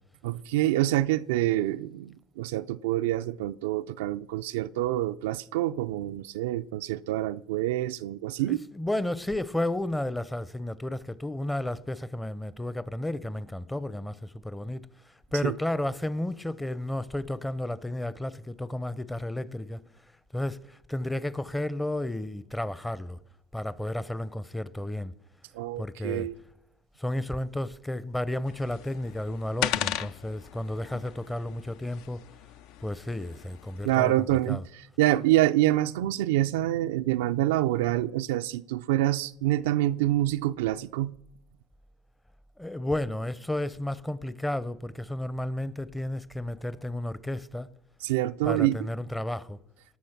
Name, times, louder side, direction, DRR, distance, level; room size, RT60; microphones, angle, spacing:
voice 1, 0.2-8.6 15.4-15.5 25.5-26.3 33.8-41.1 48.0-48.8, right 15 dB, 85° right, 0.3 m, -26 dB
voice 2, 8.5-14.9 15.3-19.8 20.3-23.2 23.5-25.1 25.8-26.3 27.0-32.2 32.8-34.6 42.6-47.7 48.4-49.6, left 1 dB, 10° left, 0.6 m, -32 dB
sound 1, 28.5-34.0, left 11 dB, 70° left, 0.5 m, -37 dB
18.5 x 6.2 x 5.9 m
supercardioid pair, 90°, 0 cm